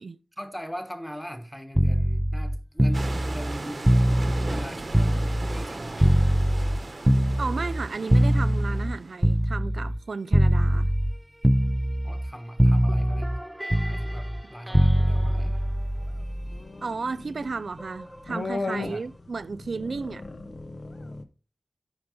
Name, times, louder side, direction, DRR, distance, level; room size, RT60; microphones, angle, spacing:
voice 1, 0.4-4.0 4.5-6.1 12.0-13.3 13.9-15.6 18.7-19.0, equal, 5° left, 1.3 m, -40 dB
sound 1, 1.8-5.7 6.0-10.0 10.3-11.2 11.4-12.3 12.6-16.6 17.8-18.0, equal, 10° right, 0.4 m, -23 dB
sound 2, 2.9-9.3, right 2 dB, 55° right, 1.2 m, -37 dB
voice 2, 7.4-10.9 16.8-20.2, right 4 dB, 80° right, 0.3 m, -33 dB
sound 3, 14.9-21.2, left 3 dB, 60° left, 1.0 m, -37 dB
8.8 x 5.4 x 5.1 m
wide cardioid pair, 65°, 0 cm